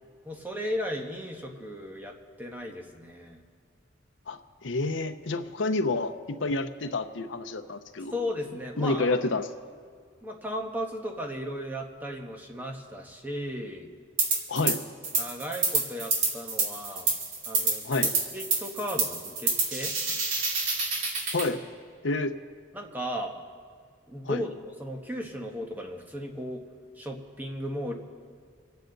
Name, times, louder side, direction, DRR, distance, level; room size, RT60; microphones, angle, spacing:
voice 1, 0.2-3.4 8.1-9.3 10.2-13.9 15.2-17.1 17.5-19.9 22.7-23.3 24.1-26.6 27.0-27.9, equal, 10° right, 1 dB, 1.1 m, -36 dB
voice 2, 4.3-8.2 8.8-9.5 14.5-14.8 17.8-18.1 21.3-21.6 22.0-22.3 24.2-24.4, left 3 dB, 75° left, 8 dB, 0.7 m, -29 dB
sound 1, 14.2-14.8 15.0-21.5, right 3 dB, 85° right, 2.4 m, -27 dB
26.5 x 9.2 x 3.9 m, 2.1 s
head